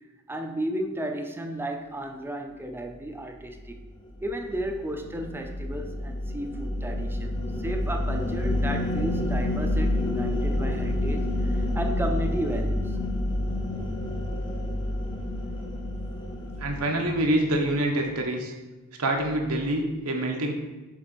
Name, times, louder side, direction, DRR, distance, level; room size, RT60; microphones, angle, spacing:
voice 1, 0.3-3.8 4.2-7.3 7.6-13.0, right 1 dB, 10° right, 5 dB, 0.4 m, -33 dB
sound 1, 3.6-18.1, left 1 dB, 20° left, 0.7 m, -29 dB
voice 2, 16.6-18.5 19.0-20.5, right 1 dB, 85° right, 1 dB, 1.1 m, -26 dB
7.4 x 3.9 x 4.4 m, 1.2 s
head